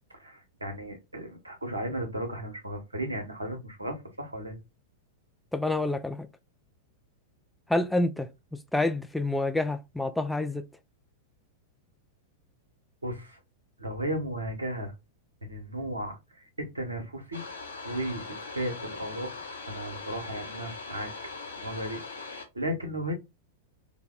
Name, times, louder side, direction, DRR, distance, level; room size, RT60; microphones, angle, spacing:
voice 1, 0.1-4.6 13.0-13.4 13.8-14.9 15.4-17.4 17.8-19.3 19.7-21.1 21.6-23.1, right 1 dB, 80° right, 1.1 m, -35 dB
voice 2, 5.5-6.3 7.7-8.3 8.7-10.6, left 2 dB, 5° left, 0.3 m, -27 dB
sound 1, 17.3-22.4, left 4 dB, 75° left, 0.9 m, -41 dB
3.9 x 2.2 x 3.6 m
figure-of-eight pair, 95°, 0 cm